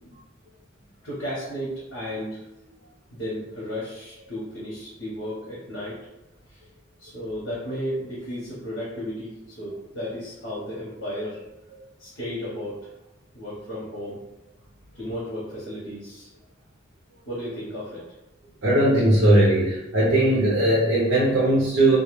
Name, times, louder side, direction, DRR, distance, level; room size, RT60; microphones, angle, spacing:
voice 1, 1.0-2.4 3.1-6.0 6.5-6.6 7.0-11.4 12.0-12.9 13.3-14.2 14.9-16.3 17.3-18.1, equal, 80° left, -8 dB, 0.9 m, -34 dB
voice 2, 18.6-22.0, right 1 dB, 80° right, -6 dB, 0.7 m, -19 dB
2.2 x 2.2 x 3.0 m, 0.94 s
head